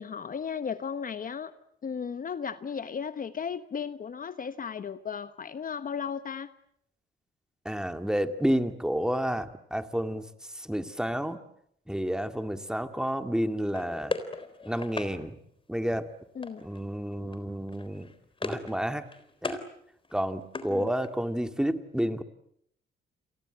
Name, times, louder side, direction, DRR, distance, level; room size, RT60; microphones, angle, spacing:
voice 1, 0.0-1.5 1.8-6.5 16.3-16.6 20.7-20.9, left 6 dB, 45° left, 12 dB, 1.2 m, -35 dB
voice 2, 7.6-10.2 10.5-11.4 11.9-14.1 14.6-15.4 15.7-16.1 16.6-18.1 18.4-19.0 19.4-19.6 20.1-22.2, equal, 5° right, 8 dB, 2.2 m, -30 dB
sound 1, 13.7-15.1 16.4-16.8 17.1-17.4 17.7-18.8 19.0-19.7 20.0-21.3, left 3 dB, 25° left, 3.8 m, -37 dB
29.5 x 23.0 x 8.0 m, 0.71 s
cardioid pair, 90°, 20 cm